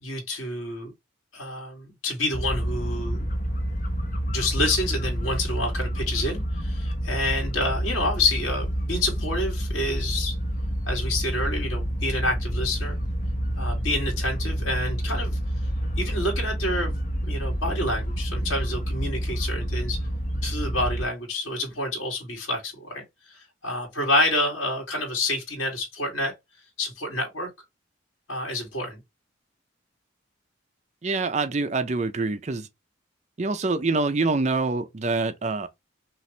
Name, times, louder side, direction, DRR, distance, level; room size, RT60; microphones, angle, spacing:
voice 1, 0.0-0.9 1.3-3.3 4.3-10.3 10.9-13.0 13.6-15.4 16.0-16.9 17.2-20.0 20.4-26.3 26.8-27.5 28.3-29.0, left 1 dB, 90° left, 2.1 m, -28 dB
sound 1, 2.3-21.1, equal, 40° left, 0.8 m, -28 dB
voice 2, 31.0-32.7 33.4-35.7, right 3 dB, 35° right, 0.4 m, -25 dB
5.7 x 2.5 x 3.2 m
head